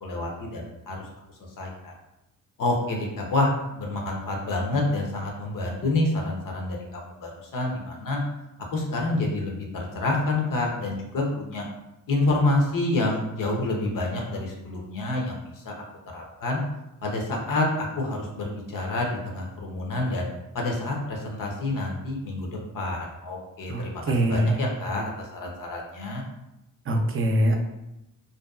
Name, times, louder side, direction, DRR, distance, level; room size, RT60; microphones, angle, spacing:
voice 1, 0.0-1.1 1.6-1.9 2.6-8.2 8.7-11.7 12.1-15.8 16.1-16.6 17.0-20.3 20.5-24.0 24.3-26.2, left 2 dB, 65° left, 0 dB, 0.7 m, -28 dB
voice 2, 23.7-24.6 26.9-27.6, right 1 dB, 40° right, 3 dB, 0.5 m, -23 dB
2.7 x 2.2 x 2.3 m, 0.90 s
cardioid pair, 70°, 34 cm